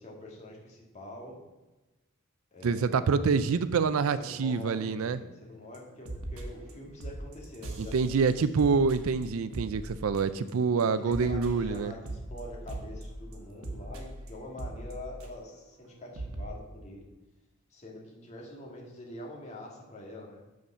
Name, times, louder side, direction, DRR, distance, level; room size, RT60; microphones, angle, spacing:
voice 1, 0.0-1.4 2.5-3.2 4.2-8.1 8.6-8.8 10.6-17.1 17.7-20.4, left 1 dB, 35° left, -2 dB, 2.2 m, -45 dB
voice 2, 2.6-5.2 7.8-11.9, right 5 dB, 70° right, 14 dB, 0.4 m, -26 dB
sound 1, 5.7-5.8 6.0-6.7 7.0-10.5 10.8-15.6 15.9-16.0 16.1-16.4, right 1 dB, 90° right, 1.3 m, -40 dB
7.2 x 6.4 x 5.5 m, 1.1 s
head